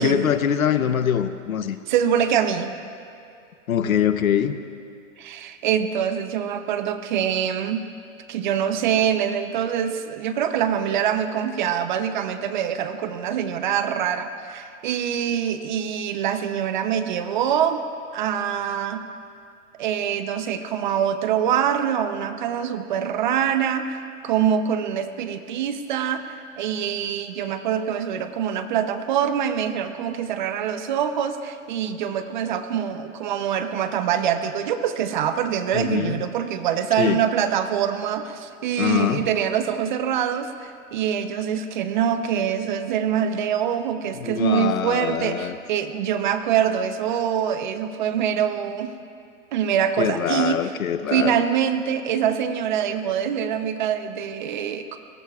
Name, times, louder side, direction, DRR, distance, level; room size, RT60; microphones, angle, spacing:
voice 1, 0.0-1.8 3.7-4.5 35.7-36.1 37.0-37.2 38.8-39.3 44.2-45.6 50.0-51.4, left 9 dB, 90° left, 11 dB, 0.9 m, -23 dB
voice 2, 1.9-2.7 5.2-7.8 8.3-17.8 18.1-19.0 19.8-49.0 49.5-50.7 51.1-55.0, right 9 dB, 35° right, 9 dB, 0.7 m, -24 dB
24.5 x 19.0 x 2.4 m, 2.5 s
hypercardioid pair, 155°, 41 cm